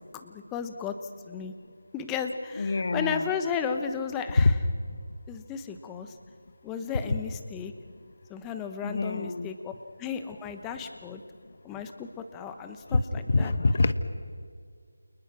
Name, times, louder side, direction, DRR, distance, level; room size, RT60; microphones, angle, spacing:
voice 1, 0.1-0.9 1.3-1.5 1.9-4.5 5.3-6.1 6.6-7.7 8.3-9.7 10.0-11.2 11.6-13.5, left 6 dB, 10° left, 7 dB, 1.1 m, -34 dB
voice 2, 2.5-3.3 4.4-4.5 8.8-9.5 12.9-13.0 13.3-13.9, left 3 dB, 50° left, 12 dB, 1.6 m, -24 dB
29.5 x 29.5 x 6.2 m, 2.1 s
figure-of-eight pair, 170°, 0 cm